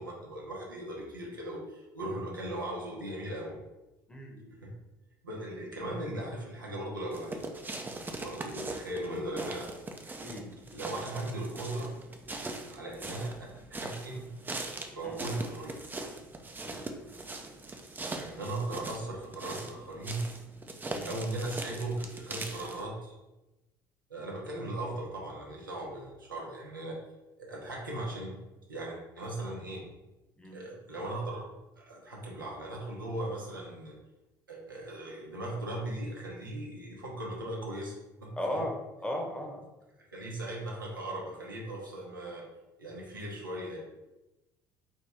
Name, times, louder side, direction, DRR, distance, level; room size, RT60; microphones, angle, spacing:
voice 1, 0.0-3.6 4.6-4.7 5.2-7.4 8.2-9.7 10.7-11.9 12.7-14.3 14.9-15.8 18.1-20.2 21.0-23.2 24.1-27.0 27.4-28.4 28.7-29.8 30.5-33.9 34.5-37.9 38.2-38.6 40.1-42.4 42.8-43.8, right 1 dB, 90° right, -3 dB, 0.9 m, -38 dB
voice 2, 4.1-4.5 10.2-10.5 15.0-15.2 16.6-16.8 20.9-21.1 30.4-30.6 38.4-38.7 39.0-39.6, left 1 dB, 10° left, 1 dB, 1.0 m, -36 dB
sound 1, 7.1-22.8, right 2 dB, 20° right, 0.6 m, -41 dB
4.2 x 2.9 x 3.5 m, 1.0 s
figure-of-eight pair, 60°, 11 cm